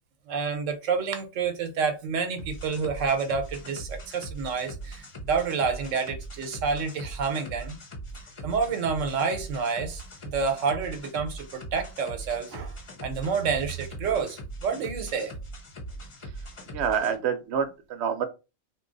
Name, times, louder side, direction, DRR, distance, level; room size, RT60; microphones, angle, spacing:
voice 1, 0.3-7.8 8.4-12.8 13.0-15.3, right 5 dB, 90° right, 1.1 m, -29 dB
sound 1, 2.4-17.1, right 1 dB, 35° left, 0.6 m, -40 dB
voice 2, 16.7-18.2, right 7 dB, 70° right, 0.9 m, -27 dB
2.8 x 2.3 x 3.8 m
omnidirectional pair, 1.3 m